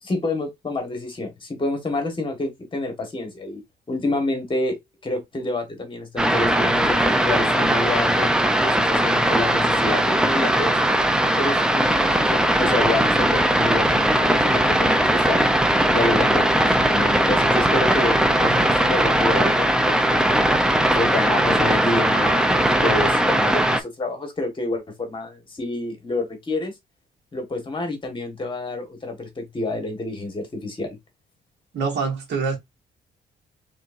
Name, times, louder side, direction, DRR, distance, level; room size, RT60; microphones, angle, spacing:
voice 1, 0.0-3.6 3.9-8.3 8.6-10.8 11.4-15.4 15.9-20.2 20.9-26.7 27.3-31.0, left 2 dB, 25° left, 1.6 m, -28 dB
sound 1, 6.2-23.8, right 1 dB, 5° right, 0.5 m, -19 dB
voice 2, 31.7-32.6, right 5 dB, 70° right, 1.9 m, -25 dB
4.4 x 3.5 x 2.6 m
cardioid pair, 135°, 18 cm